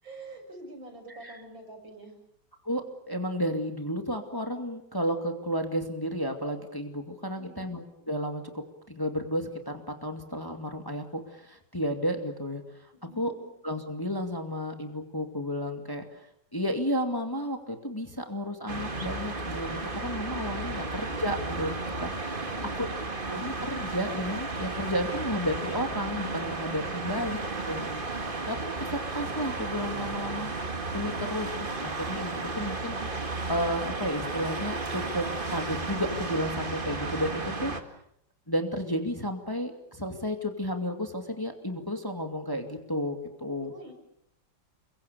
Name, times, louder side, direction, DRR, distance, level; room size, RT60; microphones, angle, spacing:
voice 1, 0.0-2.2 7.2-7.6 12.9-13.5 22.5-23.1 43.6-43.9, right 2 dB, 75° right, 3 dB, 7.4 m, -47 dB
voice 2, 2.6-12.6 13.2-13.3 13.6-16.3 16.5-23.0 23.3-30.7 30.9-33.0 33.5-37.7 38.5-43.7, equal, 10° left, 4 dB, 2.3 m, -32 dB
sound 1, 18.7-37.8, right 3 dB, 25° right, 2.0 m, -33 dB
28.5 x 24.0 x 6.9 m, 0.72 s
omnidirectional pair, 2.1 m